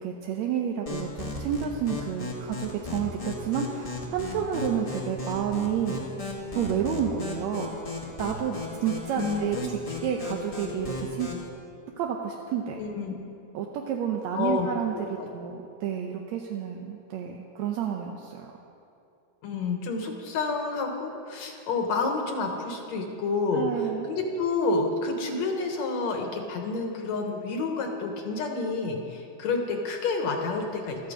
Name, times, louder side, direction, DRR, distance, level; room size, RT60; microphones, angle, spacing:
voice 1, 0.0-6.0 6.6-7.8 8.2-9.6 10.0-11.3 12.0-12.8 13.5-18.6 23.5-24.1, right 8 dB, 70° right, 1 dB, 1.8 m, -30 dB
sound 1, 0.9-11.5, left 2 dB, 30° left, 0.6 m, -36 dB
voice 2, 9.1-9.7 12.8-13.1 14.3-14.7 15.2-15.3 19.4-23.7 24.1-31.1, left 3 dB, 65° left, 3 dB, 2.2 m, -29 dB
15.0 x 13.0 x 5.0 m, 2.6 s
omnidirectional pair, 3.8 m